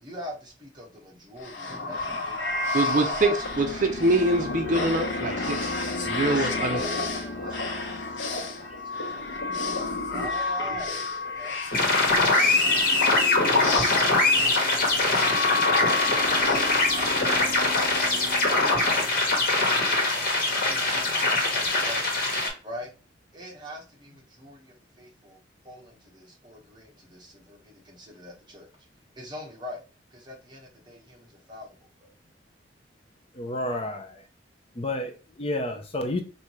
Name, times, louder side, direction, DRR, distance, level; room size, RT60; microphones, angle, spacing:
voice 1, 0.0-3.3 3.6-3.7 6.2-9.4 9.8-11.6 12.0-13.0 18.2-20.3 20.6-22.2 22.6-22.9 23.3-25.4 25.6-28.7 29.2-29.8 30.1-31.7 32.0-32.1, equal, 25° right, 1.2 m, -43 dB
sound 1, 1.4-19.0, left 3 dB, 85° left, 0.9 m, -31 dB
voice 2, 2.7-5.7 6.0-6.8, right 2 dB, 45° right, 0.5 m, -24 dB
sound 2, 11.7-22.5, left 2 dB, 55° left, 1.6 m, -23 dB
voice 3, 33.4-34.2 34.8-36.2, left 1 dB, 35° left, 0.5 m, -30 dB
4.8 x 2.7 x 3.0 m
head